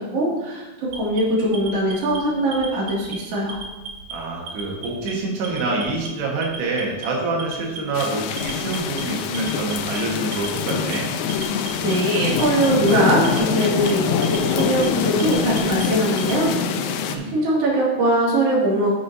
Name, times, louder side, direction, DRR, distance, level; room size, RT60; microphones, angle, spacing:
voice 1, 0.0-3.6 11.8-16.5 16.9-17.0 17.3-18.9, right 1 dB, 40° right, -6 dB, 2.9 m, -21 dB
Alarm, 0.9-2.2 2.5-3.2 3.5-4.1 4.5-5.1 5.4-6.1 6.4-7.1 7.4-8.0 8.4-9.0 9.3-10.0 10.3-11.0 11.3-11.9 12.3-12.9 13.2-13.9 14.2-14.9 15.2-16.4, right 5 dB, 60° right, 2.1 m, -36 dB
voice 2, 4.1-11.1 17.1-17.3, right 2 dB, 85° right, -2 dB, 3.5 m, -26 dB
sound 1, 7.9-17.2, left 7 dB, 85° left, 2.0 m, -24 dB
9.5 x 8.5 x 2.7 m, 1.1 s
omnidirectional pair, 4.6 m